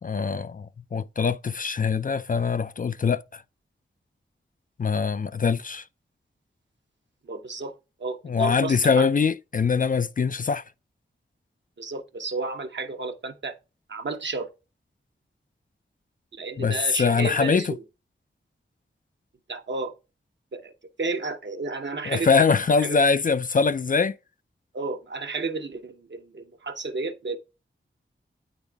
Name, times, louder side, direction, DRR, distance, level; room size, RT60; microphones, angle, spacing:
voice 1, 0.0-3.4 4.8-5.9 8.2-10.6 16.6-17.7 22.1-24.1, left 5 dB, 40° left, 0.4 m, -23 dB
voice 2, 7.2-7.7 8.0-9.1 11.8-13.5 13.9-14.5 16.3-17.8 19.5-19.9 20.5-20.7 21.0-22.5 22.8-23.0 24.7-27.4, right 3 dB, 60° right, 1.0 m, -32 dB
8.8 x 4.0 x 3.4 m
cardioid pair, 50°, 21 cm